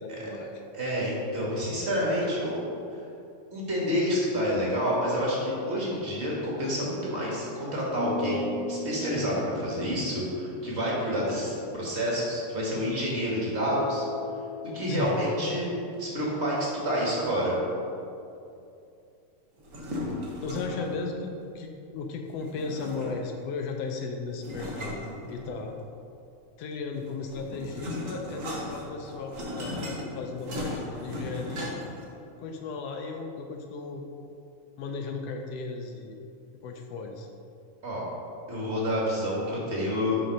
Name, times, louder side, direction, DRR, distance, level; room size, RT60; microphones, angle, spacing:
voice 1, 0.0-0.6 14.9-15.2 20.4-25.8 26.6-31.8 32.4-34.0 34.8-36.2 36.6-37.3, left 4 dB, 80° left, 3 dB, 1.4 m, -36 dB
voice 2, 0.7-2.7 3.5-14.1 14.7-15.7 16.0-17.5 37.8-38.0 38.5-40.2, equal, 30° right, -5 dB, 1.3 m, -28 dB
sound 1, 7.9-11.1 13.4-14.8, left 2 dB, 65° left, 1.0 m, -37 dB
sound 2, 19.6-21.0 22.4-23.4 24.4-25.8 27.0-32.0, left 1 dB, 70° right, 0.7 m, -36 dB
9.3 x 3.9 x 5.2 m, 2.6 s
omnidirectional pair, 3.3 m